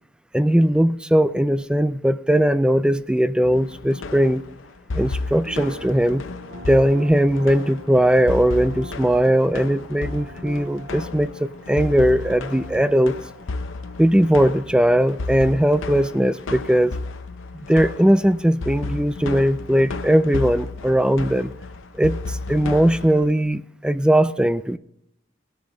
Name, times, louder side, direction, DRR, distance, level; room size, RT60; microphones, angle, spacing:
voice 1, 0.3-4.4 4.9-6.3 6.7-13.2 14.0-17.0 17.7-21.5 22.0-24.8, equal, 5° right, 0.3 m, -19 dB
sound 1, 3.4-23.3, left 3 dB, 75° left, 0.7 m, -33 dB
sound 2, 5.4-15.6, equal, 60° right, 1.8 m, -43 dB
18.5 x 7.1 x 3.8 m
head